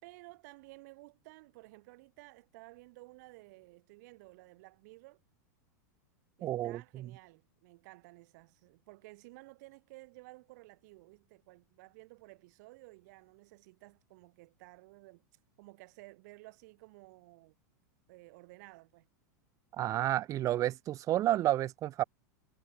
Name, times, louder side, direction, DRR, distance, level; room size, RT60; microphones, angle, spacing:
voice 1, 0.0-5.2 6.4-15.2 15.6-17.6 18.1-19.1, right 23 dB, 60° right, 2.5 m, -55 dB
voice 2, 6.4-7.1 19.8-22.0, right 13 dB, 35° right, 0.5 m, -31 dB
hypercardioid pair, 115°, 10 cm